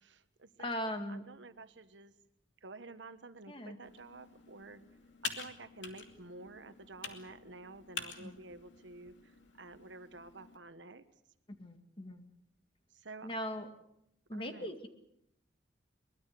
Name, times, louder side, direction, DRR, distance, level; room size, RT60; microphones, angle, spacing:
voice 1, 0.0-2.1 2.6-4.8 5.2-11.0 12.9-13.3 14.3-14.7, right 3 dB, 85° right, 11 dB, 1.3 m, -51 dB
voice 2, 0.6-1.2 3.5-3.8 8.2-8.4 11.6-12.3 13.2-13.7 14.3-14.9, equal, 30° left, 6 dB, 2.1 m, -39 dB
Computer keyboard, 3.8-10.6, left 6 dB, 90° left, 2.5 m, -47 dB
23.0 x 21.0 x 6.8 m, 0.77 s
head